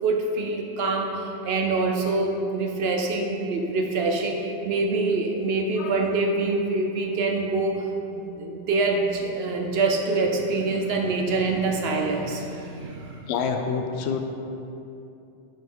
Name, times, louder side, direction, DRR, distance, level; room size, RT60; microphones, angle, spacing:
voice 1, 0.0-13.3, right 3 dB, 65° right, 2 dB, 0.9 m, -25 dB
voice 2, 5.8-6.1 13.3-14.2, left 6 dB, 75° left, 5 dB, 0.8 m, -27 dB
7.4 x 3.8 x 5.3 m, 2.8 s
omnidirectional pair, 1.2 m